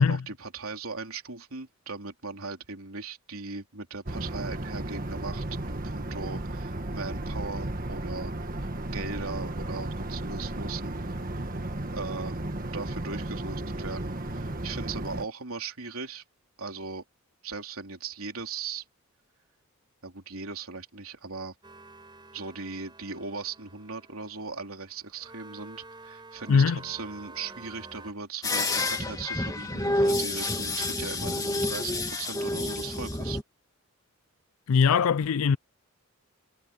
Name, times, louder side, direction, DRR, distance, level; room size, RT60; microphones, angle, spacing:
voice 1, 0.0-8.3 8.6-12.4 12.7-16.2 16.6-17.0 17.4-18.8 20.0-21.5 22.3-33.4, right 4 dB, 80° right, 3.3 m, -38 dB
sound 1, 4.1-15.2, right 1 dB, 40° right, 1.7 m, -34 dB
sound 2, 21.6-28.1, right 3 dB, 20° right, 6.6 m, -49 dB
sound 3, 28.4-33.4, left 2 dB, 15° left, 2.5 m, -29 dB
voice 2, 34.7-35.6, left 6 dB, 80° left, 0.4 m, -21 dB
head